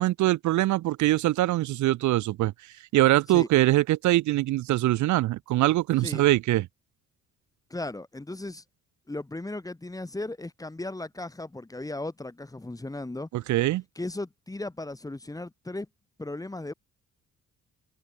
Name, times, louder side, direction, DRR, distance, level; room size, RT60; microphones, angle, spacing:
voice 1, 0.0-2.5 2.9-6.7 13.3-13.8, right 16 dB, 75° right, 0.6 m, -23 dB
voice 2, 7.7-8.6 9.1-13.3 13.9-15.9 16.2-16.7, left 2 dB, 10° left, 1.7 m, -36 dB
cardioid pair, 90°, 30 cm